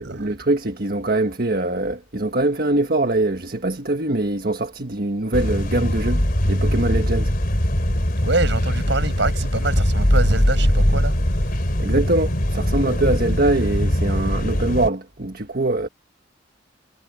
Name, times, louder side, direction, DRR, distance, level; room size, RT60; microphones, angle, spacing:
voice 1, 0.0-7.3 11.8-15.9, right 2 dB, 50° right, 1.5 m, -23 dB
sound 1, 5.3-14.9, equal, 50° left, 3.8 m, -21 dB
voice 2, 8.2-11.1, right 2 dB, 65° right, 6.8 m, -25 dB
head